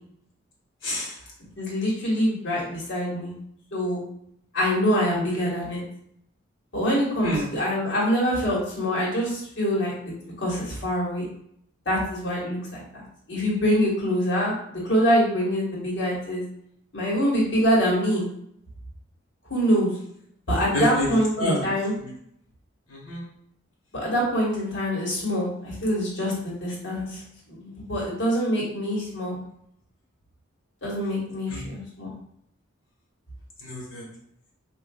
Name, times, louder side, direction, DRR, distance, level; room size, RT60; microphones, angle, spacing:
voice 1, 0.8-1.2 7.2-7.5 20.7-21.7 22.0-22.1 22.9-23.2 31.5-31.6 33.6-34.0, equal, 75° left, -3 dB, 1.4 m, -28 dB
voice 2, 1.6-3.3 3.7-4.0 4.5-5.8 6.7-9.9 10.4-11.2 11.8-12.8 13.3-16.4 16.9-18.2 19.5-19.9 20.5-21.9 23.9-27.2 27.5-29.4 30.8-32.1, equal, 60° left, -5 dB, 1.4 m, -25 dB
4.5 x 2.5 x 2.3 m, 0.70 s
head